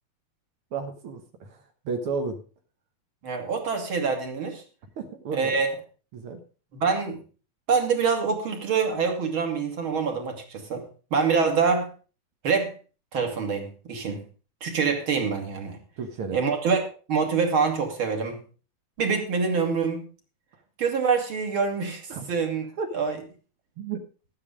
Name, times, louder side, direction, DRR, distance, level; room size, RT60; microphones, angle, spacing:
voice 1, 0.7-2.4 5.0-5.6 6.1-6.4 16.0-16.4 22.1-22.3 22.8-22.9 23.8-24.0, right 5 dB, 65° right, 3 dB, 1.4 m, -33 dB
voice 2, 3.2-4.6 5.3-5.7 6.8-7.2 7.7-10.8 11.1-11.9 12.4-12.7 13.1-14.2 14.6-15.8 16.3-16.8 17.1-18.4 19.0-20.0 20.8-22.0 22.3-22.6 22.9-23.2, right 5 dB, 40° right, 4 dB, 2.5 m, -25 dB
13.0 x 8.8 x 5.0 m, 0.36 s
omnidirectional pair, 4.2 m